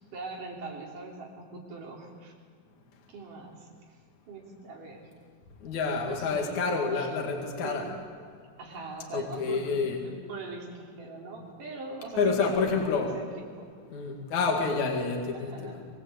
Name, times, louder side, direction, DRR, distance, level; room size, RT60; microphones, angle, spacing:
voice 1, 0.1-2.3 3.1-4.0 4.3-5.1 6.0-7.1 7.6-7.9 8.6-13.7 15.3-15.9, right 3 dB, 65° right, -1 dB, 5.0 m, -42 dB
voice 2, 5.6-7.9 9.1-10.0 12.2-13.1 13.9-15.8, left 4 dB, 55° left, 1 dB, 3.5 m, -28 dB
25.0 x 22.0 x 8.2 m, 2.1 s
omnidirectional pair, 4.1 m